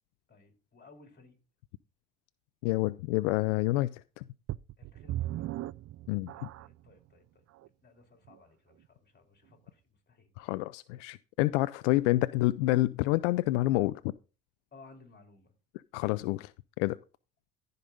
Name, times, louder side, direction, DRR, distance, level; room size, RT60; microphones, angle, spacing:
voice 1, 0.3-1.4 4.8-5.6 6.3-7.5 7.8-10.3 12.0-12.1 14.7-15.5, left 3 dB, 30° left, 3.6 m, -58 dB
voice 2, 2.6-4.2 6.1-6.3 10.4-14.1 15.9-16.5 16.8-17.0, left 18 dB, 80° left, 0.5 m, -28 dB
sound 1, 4.5-6.9 7.6-7.7 8.3-8.4, right 15 dB, 45° right, 0.5 m, -37 dB
14.0 x 5.4 x 3.9 m
hypercardioid pair, 65°, 36 cm